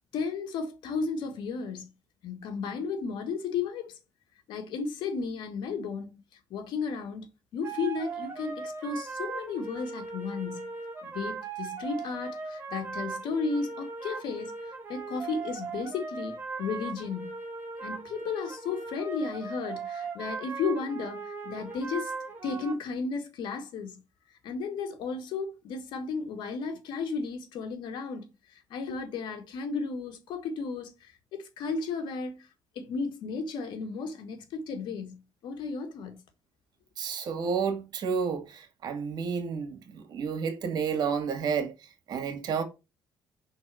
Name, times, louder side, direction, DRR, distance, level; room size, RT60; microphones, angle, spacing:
voice 1, 0.1-1.9 2.2-4.0 4.5-6.2 6.5-10.7 11.0-14.5 14.9-17.4 17.8-22.1 22.4-24.0 24.4-32.4 32.7-36.2, left 4 dB, 75° left, 1.6 m, -34 dB
sound 1, 7.6-22.7, right 4 dB, 25° right, 2.4 m, -38 dB
voice 2, 37.0-41.7 42.1-42.6, right 6 dB, 65° right, 1.7 m, -30 dB
5.5 x 3.9 x 6.1 m
cardioid pair, 110°, 8 cm